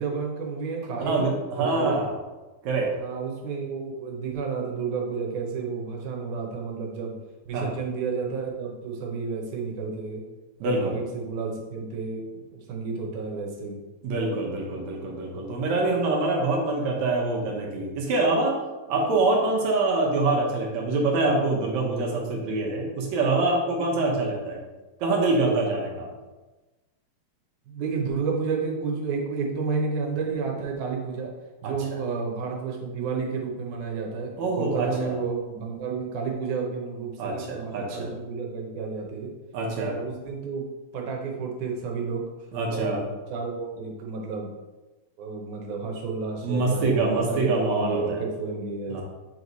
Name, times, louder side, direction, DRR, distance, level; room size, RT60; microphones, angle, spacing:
voice 1, 0.0-1.3 1.6-2.0 3.0-7.1 7.5-10.2 10.6-13.8 27.7-31.3 31.6-39.3 39.8-40.7 40.9-42.2 42.7-44.5 45.2-49.0, right 5 dB, 90° right, 0 dB, 2.4 m, -31 dB
voice 2, 1.0-2.2 2.6-2.9 7.5-7.7 10.6-11.0 14.0-18.5 18.9-24.6 25.0-26.1 31.6-32.0 34.4-35.2 37.2-38.1 39.5-40.0 42.5-43.0 46.4-48.2 48.9-49.0, right 2 dB, 70° right, -1 dB, 2.2 m, -25 dB
7.9 x 3.1 x 4.0 m, 1.2 s
omnidirectional pair, 3.4 m